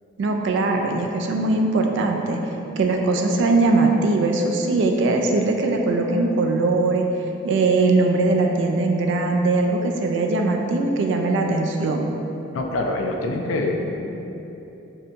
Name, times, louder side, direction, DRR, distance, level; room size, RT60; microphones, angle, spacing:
voice 1, 0.2-2.4 2.8-7.1 7.4-12.0, right 3 dB, 65° right, 3 dB, 0.3 m, -20 dB
voice 2, 12.5-13.9, left 2 dB, 85° left, 2 dB, 0.4 m, -25 dB
3.2 x 2.7 x 2.7 m, 3.0 s
head